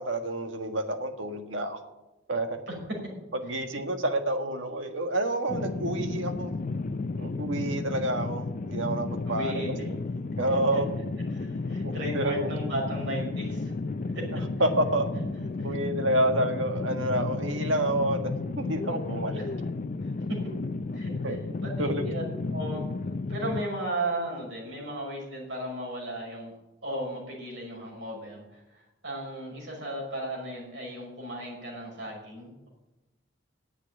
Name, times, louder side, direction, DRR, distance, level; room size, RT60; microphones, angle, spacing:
voice 1, 0.0-1.8 2.3-2.6 3.4-6.5 7.2-9.9 10.4-10.9 11.8-12.5 14.3-15.1 15.6-18.3 18.6-19.4 21.2-21.4 21.8-22.0 22.7-22.8, right 1 dB, 90° right, 6 dB, 1.6 m, -29 dB
sound 1, 5.5-23.6, left 3 dB, 45° left, 0.5 m, -33 dB
voice 2, 9.3-9.7 10.7-10.8 11.3-13.7 14.1-14.2 15.6-15.7 19.3-19.4 20.0-20.2 20.9-22.2 22.5-22.8 23.3-26.5 26.8-32.7, right 1 dB, 70° right, -2 dB, 5.8 m, -35 dB
10.0 x 8.2 x 9.4 m, 0.99 s
head